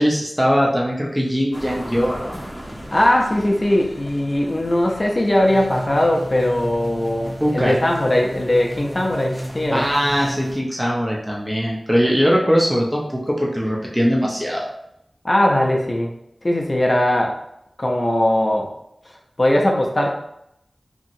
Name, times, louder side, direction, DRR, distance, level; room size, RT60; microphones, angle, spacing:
voice 1, 0.0-2.4 7.4-7.7 9.7-14.7, equal, 10° right, -3 dB, 0.6 m, -20 dB
sound 1, 1.5-10.6, equal, 15° left, 0.9 m, -39 dB
voice 2, 2.9-9.9 15.2-16.1 16.4-17.4 17.8-18.7 19.4-20.1, left 1 dB, 40° left, 0 dB, 0.5 m, -19 dB
sound 2, 5.5-10.6, right 1 dB, 50° right, 0.4 m, -34 dB
2.9 x 2.7 x 2.6 m, 0.78 s
wide cardioid pair, 45°, 0 cm